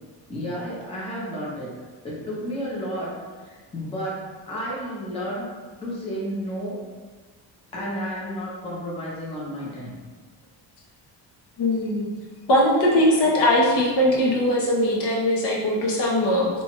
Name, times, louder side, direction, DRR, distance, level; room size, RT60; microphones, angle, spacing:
voice 1, 0.3-1.7 2.0-3.1 3.4-5.5 5.8-6.8 7.7-10.0, equal, 15° left, -6 dB, 0.6 m, -32 dB
voice 2, 11.6-12.1 12.5-16.5, left 1 dB, 65° left, -3 dB, 0.9 m, -20 dB
3.0 x 2.3 x 4.3 m, 1.4 s
cardioid pair, 165°, 45 cm